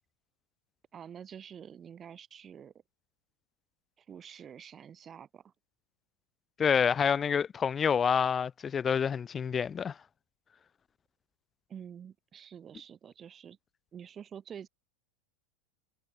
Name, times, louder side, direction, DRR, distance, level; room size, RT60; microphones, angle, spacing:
voice 1, 0.9-2.7 4.0-5.5 11.7-13.6 13.9-14.7, right 8 dB, 25° right, 6.5 m, -47 dB
voice 2, 6.6-10.0, left 7 dB, 25° left, 0.7 m, -27 dB
supercardioid pair, 120°, 0 cm